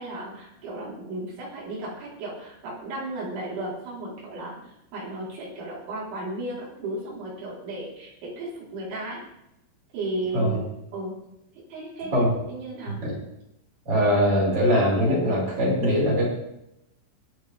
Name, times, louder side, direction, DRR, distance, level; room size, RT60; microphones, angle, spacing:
voice 1, 0.0-4.6 4.9-9.2 9.9-10.6 10.9-11.1 11.7-13.0, right 1 dB, 75° right, -6 dB, 6.6 m, -34 dB
voice 2, 12.9-13.2 13.9-16.2, equal, 30° right, -5 dB, 6.2 m, -22 dB
23.5 x 7.8 x 3.6 m, 0.84 s
omnidirectional pair, 5.4 m